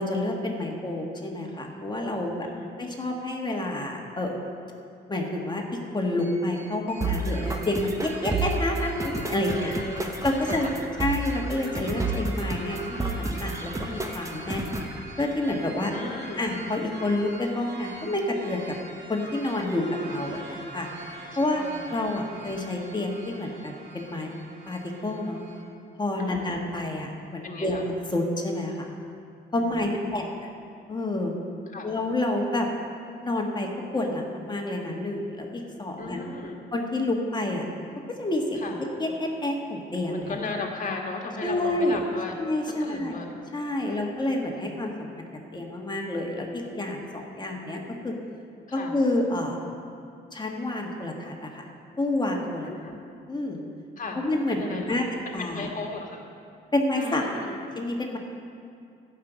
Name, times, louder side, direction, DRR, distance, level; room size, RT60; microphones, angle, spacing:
voice 1, 0.0-2.5 2.8-4.4 5.1-9.8 10.2-10.7 11.0-14.7 15.2-15.9 16.4-18.7 19.1-20.9 21.4-24.4 24.7-25.4 26.0-27.8 28.1-28.9 29.5-30.3 30.9-31.3 31.8-32.7 33.2-36.2 36.7-37.7 38.2-38.6 39.0-40.3 41.4-42.0 42.4-43.2 43.5-48.1 48.7-49.6 50.3-51.7 52.0-52.7 53.3-53.6 54.1-55.7 56.7-57.2 57.7-58.2, left 1 dB, 20° left, 1 dB, 1.7 m, -29 dB
sound 1, 6.2-25.6, right 2 dB, 70° right, 2.4 m, -44 dB
sound 2, 7.0-15.0, right 2 dB, 15° right, 1.0 m, -31 dB
voice 2, 9.4-10.1 10.6-10.9 15.9-16.4 21.5-21.9 22.2-22.3 26.2-26.7 27.4-27.8 29.5-30.3 31.7-31.9 36.0-36.6 38.5-38.8 40.1-42.3 42.6-43.3 43.8-44.2 48.7-48.9 52.6-52.9 54.0-54.2 54.5-55.0 55.4-56.2 57.0-57.6, left 3 dB, 40° left, 1 dB, 1.8 m, -36 dB
12.0 x 5.9 x 8.1 m, 2.4 s
cardioid pair, 90°, 20 cm